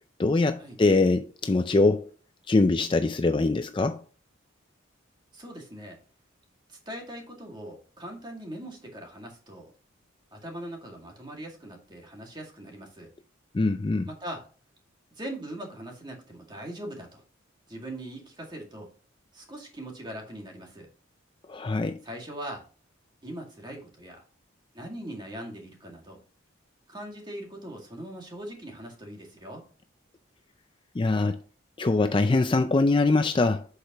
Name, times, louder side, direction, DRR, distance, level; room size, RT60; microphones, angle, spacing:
voice 1, 0.2-2.1 2.5-4.0 13.5-14.1 21.5-22.0 31.0-31.4 31.8-33.7, left 3 dB, 25° left, 0.4 m, -23 dB
voice 2, 5.3-6.0 6.7-9.7 10.3-13.1 14.1-14.4 15.1-17.2 17.7-18.9 19.3-20.9 22.0-22.6 23.2-24.2 24.7-26.2 26.9-29.7, right 1 dB, 20° right, 2.1 m, -41 dB
8.0 x 6.6 x 3.0 m
head